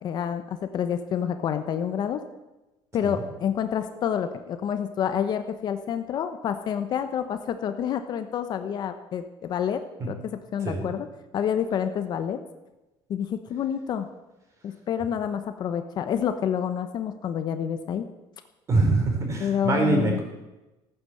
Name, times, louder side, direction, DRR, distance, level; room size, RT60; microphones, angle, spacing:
voice 1, 0.0-2.2 2.9-10.2 10.5-11.1 11.3-12.4 13.1-14.1 14.6-18.1 19.4-20.2, left 8 dB, 40° left, 9 dB, 0.9 m, -28 dB
voice 2, 18.7-20.2, right 3 dB, 30° right, 2 dB, 4.1 m, -24 dB
14.5 x 9.3 x 7.8 m, 1.0 s
cardioid pair, 155°, 11 cm